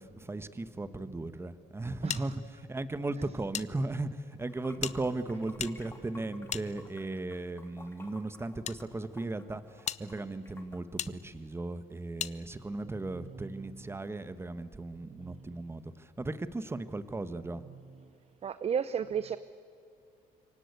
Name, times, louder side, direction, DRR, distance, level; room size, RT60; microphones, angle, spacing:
voice 1, 0.0-17.6, right 2 dB, 15° right, 12 dB, 1.3 m, -37 dB
sound 1, 2.1-3.7 4.0-4.1 4.8-7.2 8.0-8.8 9.3-9.4 9.8-10.0 11.0-11.1 12.2-12.4, left 9 dB, 40° left, 0.8 m, -39 dB
Water / Sink (filling or washing), 4.3-10.8, left 2 dB, 15° left, 2.1 m, -54 dB
voice 2, 15.0-15.4 18.4-19.4, right 7 dB, 35° right, 14 dB, 0.7 m, -33 dB
26.5 x 23.5 x 8.3 m, 2.4 s
cardioid pair, 110°, 17 cm